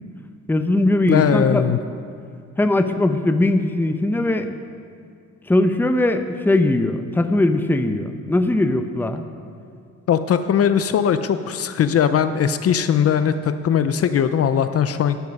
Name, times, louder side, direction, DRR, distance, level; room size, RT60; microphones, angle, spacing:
voice 1, 0.5-1.6 2.6-4.5 5.5-9.2, left 2 dB, 5° left, 8 dB, 0.7 m, -20 dB
voice 2, 1.1-1.8 10.1-15.2, left 8 dB, 50° left, 11 dB, 0.6 m, -19 dB
12.5 x 9.3 x 5.4 m, 2.4 s
cardioid pair, 90°, 30 cm